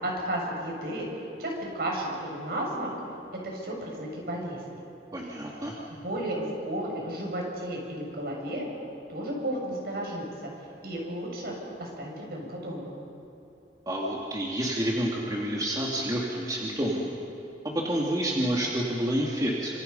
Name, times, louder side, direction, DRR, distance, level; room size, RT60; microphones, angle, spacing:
voice 1, 0.0-1.1 1.4-2.9 3.4-4.8 5.9-8.7 9.1-10.5 10.8-12.9, right 1 dB, 60° right, -1 dB, 6.9 m, -33 dB
voice 2, 5.1-5.8 13.9-17.1 17.6-19.8, right 1 dB, 20° right, -3 dB, 2.5 m, -29 dB
28.0 x 27.0 x 5.5 m, 2.8 s
head